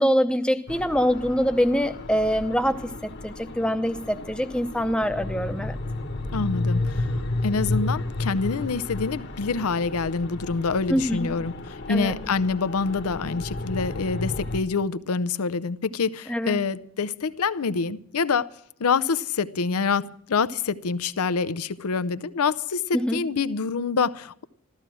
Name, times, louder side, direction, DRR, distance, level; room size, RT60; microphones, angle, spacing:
voice 1, 0.0-5.8 10.9-11.3 11.9-12.1 16.3-16.6 22.9-23.2, equal, 5° left, 0.7 m, -24 dB
sound 1, 0.7-14.6, left 2 dB, 50° left, 1.3 m, -32 dB
voice 2, 6.3-7.1 7.4-18.5 18.8-24.4, left 5 dB, 85° left, 0.6 m, -26 dB
14.0 x 14.0 x 6.2 m
head